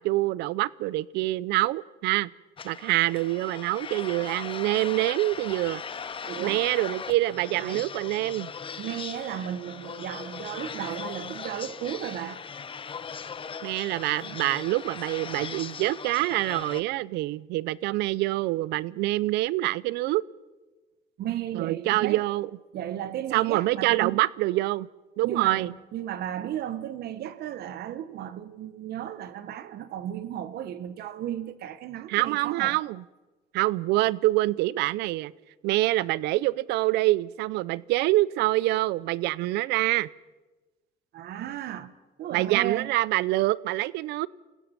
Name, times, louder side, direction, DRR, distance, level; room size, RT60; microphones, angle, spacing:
voice 1, 0.0-2.3 2.6-5.8 6.4-8.5 13.6-20.2 21.5-22.5 23.3-24.9 25.2-25.7 32.1-33.0 33.5-35.3 35.6-40.1 42.3-44.3, right 18 dB, 90° right, 0.6 m, -26 dB
sound 1, 2.6-16.8, left 6 dB, 30° left, 0.9 m, -39 dB
voice 2, 6.3-6.7 7.6-7.9 8.8-12.4 21.2-22.2 22.7-24.2 25.2-32.8 41.1-41.9 42.2-42.9, right 11 dB, 70° right, 1.3 m, -34 dB
27.5 x 16.5 x 5.9 m
cardioid pair, 110°, 17 cm